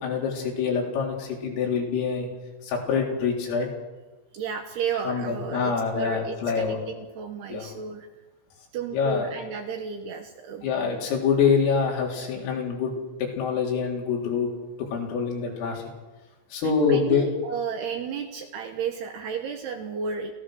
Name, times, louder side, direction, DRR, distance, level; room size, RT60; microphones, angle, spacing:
voice 1, 0.0-2.3 2.6-3.7 5.1-6.8 7.5-7.7 8.9-9.3 10.6-12.9 13.2-14.5 14.9-15.8 16.5-17.3, left 6 dB, 80° left, -1 dB, 6.4 m, -25 dB
voice 2, 4.3-8.1 8.7-10.7 16.6-20.3, right 6 dB, 70° right, 5 dB, 2.7 m, -32 dB
28.0 x 16.0 x 6.4 m, 1.2 s
omnidirectional pair, 5.9 m